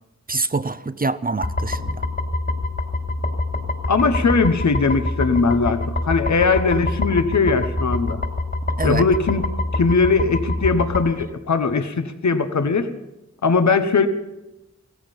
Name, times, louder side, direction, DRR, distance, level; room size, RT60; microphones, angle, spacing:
voice 1, 0.3-2.0 8.8-9.1, right 3 dB, 30° right, 12 dB, 0.6 m, -25 dB
sound 1, 1.4-11.1, left 2 dB, 40° left, 2.9 m, -26 dB
voice 2, 3.9-8.2 8.8-9.4 9.7-12.9 13.4-14.1, left 4 dB, 70° left, 9 dB, 1.2 m, -19 dB
17.0 x 14.5 x 5.4 m, 0.98 s
wide cardioid pair, 80°, 29 cm